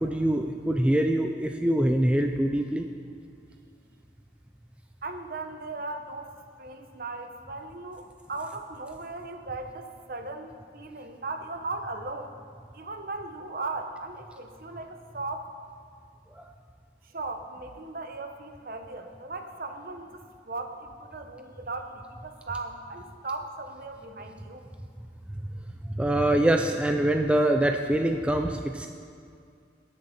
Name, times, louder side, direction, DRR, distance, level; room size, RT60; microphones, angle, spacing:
voice 1, 0.0-2.9 16.4-16.5 25.9-28.9, right 1 dB, 5° right, 4 dB, 0.4 m, -24 dB
voice 2, 5.0-12.3 12.7-15.5 17.1-24.6, right 3 dB, 50° right, 6 dB, 0.9 m, -37 dB
19.0 x 6.6 x 4.2 m, 2.4 s
head